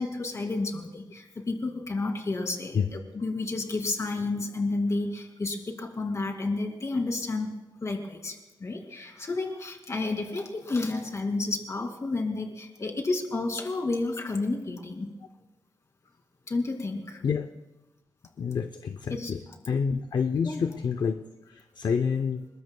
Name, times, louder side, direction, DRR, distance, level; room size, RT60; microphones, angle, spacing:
voice 1, 0.0-7.5 7.8-15.1 16.5-17.2 19.1-19.3 20.4-20.6, left 3 dB, 35° left, 3 dB, 2.5 m, -31 dB
voice 2, 18.4-19.4 19.7-22.5, left 6 dB, 55° left, 8 dB, 0.6 m, -28 dB
30.0 x 20.5 x 2.3 m, 1.0 s
wide cardioid pair, 150°, 9 cm